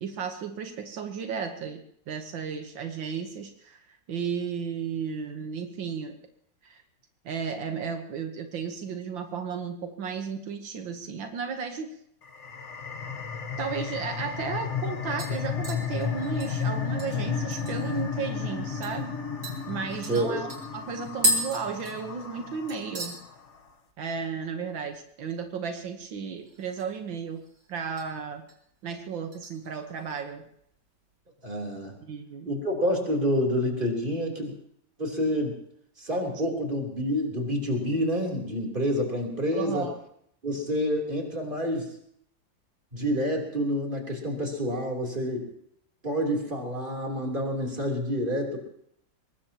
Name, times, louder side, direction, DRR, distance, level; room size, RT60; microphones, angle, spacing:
voice 1, 0.0-6.2 6.6-6.8 7.3-11.9 13.6-19.2 19.7-23.2 24.0-27.4 27.7-28.4 28.8-30.5 32.0-32.5 39.5-40.0, right 6 dB, 80° right, 5 dB, 2.0 m, -34 dB
sound 1, 12.2-23.4, left 6 dB, 40° left, 1.5 m, -33 dB
sound 2, 14.1-14.2 14.6-14.9 15.2-18.0 18.4-18.5 18.8-19.0 19.4-22.4 22.7-23.2 23.5-23.9 24.2-24.3 26.4-27.0 27.3-28.1 28.5-28.8 29.3-30.2 30.6-30.7, equal, 60° right, 4.0 m, -34 dB
voice 2, 20.1-20.4 31.4-31.9 32.5-34.5 35.0-35.5 36.0-39.9 40.4-41.9 42.9-45.5 46.0-48.6, equal, 25° right, 0 dB, 3.6 m, -28 dB
23.0 x 20.0 x 3.0 m, 0.69 s
omnidirectional pair, 2.0 m